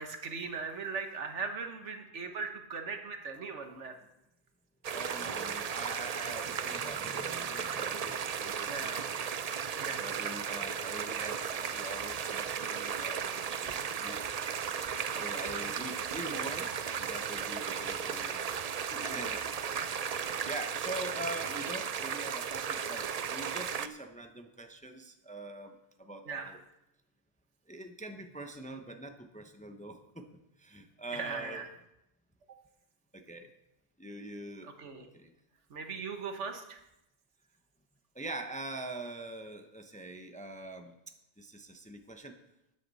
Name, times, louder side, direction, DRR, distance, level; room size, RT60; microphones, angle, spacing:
voice 1, 0.0-4.0 8.6-9.1 9.7-10.2 15.1-15.5 20.1-20.4 26.2-26.5 31.1-31.7 34.6-35.1 35.7-36.8, right 5 dB, 80° right, 6 dB, 1.6 m, -39 dB
sound 1, 4.8-23.9, right 7 dB, 50° right, 0.4 m, -35 dB
voice 2, 4.9-9.0 10.0-14.2 15.2-18.4 18.9-19.5 20.4-26.6 27.7-30.3 30.6-31.6 33.1-33.5 34.0-34.7 35.1-35.3 38.1-40.9 41.4-42.4, right 2 dB, 10° left, 6 dB, 0.7 m, -43 dB
13.0 x 10.0 x 4.2 m, 0.85 s
omnidirectional pair, 1.2 m